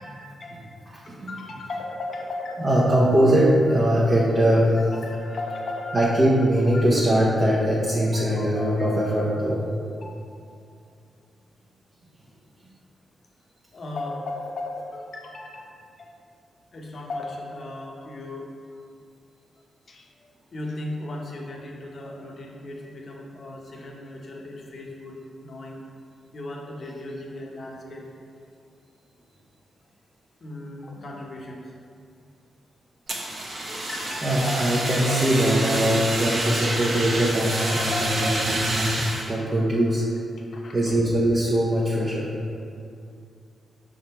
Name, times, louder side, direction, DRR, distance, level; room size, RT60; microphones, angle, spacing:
voice 1, 0.0-2.9 4.8-6.2 6.6-6.8 8.0-9.2 10.0-10.2 13.7-16.1 16.7-18.5 19.9-25.8 26.3-28.1 30.4-31.7 33.7-34.6 36.3-36.4 36.8-36.9 37.6-38.5 40.5-41.0, left 2 dB, 50° left, -1 dB, 0.9 m, -36 dB
voice 2, 0.9-1.3 2.6-4.9 5.9-9.7 33.8-33.9 34.2-37.9 38.2-40.1 40.7-42.3, right 1 dB, 35° right, -6 dB, 0.8 m, -21 dB
Fire, 33.1-39.3, right 1 dB, 55° right, 1.1 m, -28 dB
5.8 x 3.7 x 4.3 m, 2.4 s
cardioid pair, 100°, 0 cm